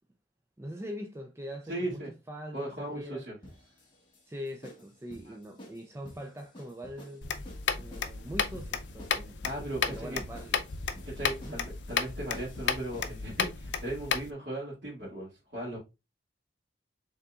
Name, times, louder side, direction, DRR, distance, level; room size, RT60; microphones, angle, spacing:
voice 1, 0.6-2.0 2.3-3.2 4.2-7.5 7.7-9.4 9.9-10.6 11.4-11.6, equal, 15° right, 0.4 m, -42 dB
voice 2, 1.7-2.1 2.5-3.3 5.3-5.4 9.4-10.2 11.2-15.8, right 1 dB, 65° right, 2.1 m, -37 dB
sound 1, 3.4-13.3, left 1 dB, 25° left, 1.5 m, -52 dB
sound 2, 7.2-14.3, left 6 dB, 70° left, 0.6 m, -33 dB
5.6 x 3.6 x 2.3 m
head